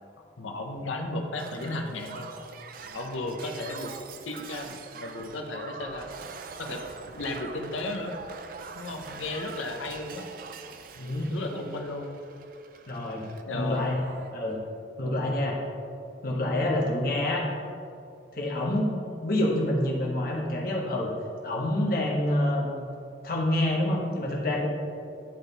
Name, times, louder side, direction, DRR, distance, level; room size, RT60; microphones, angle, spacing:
voice 1, 0.4-2.3 2.9-3.9 4.2-6.1 6.6-6.8 7.2-8.1 8.8-10.3 10.9-12.1 13.5-13.9, left 2 dB, 80° left, 3 dB, 0.7 m, -34 dB
Shatter, 1.4-13.4 13.7-14.3 15.3-15.5, right 5 dB, 45° right, 0.4 m, -44 dB
voice 2, 11.0-11.3 12.9-13.3 13.5-14.0 14.3-14.6 15.0-15.6 16.2-17.5 18.3-21.1 21.4-22.8 23.2-24.7, left 1 dB, 50° left, -2 dB, 1.1 m, -27 dB
10.0 x 3.9 x 4.0 m, 2.5 s
head